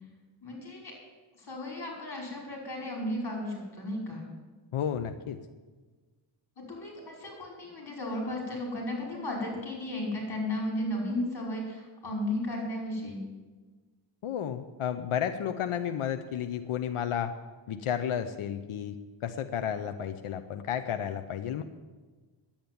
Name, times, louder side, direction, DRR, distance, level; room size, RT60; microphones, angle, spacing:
voice 1, 0.4-0.9 1.4-4.2 6.7-13.2, left 1 dB, 50° left, 0 dB, 5.5 m, -34 dB
voice 2, 4.7-5.4 14.2-17.3 17.7-19.0 19.2-21.6, left 9 dB, 85° left, 8 dB, 0.8 m, -32 dB
10.5 x 8.9 x 9.5 m, 1.3 s
wide cardioid pair, 95°, 49 cm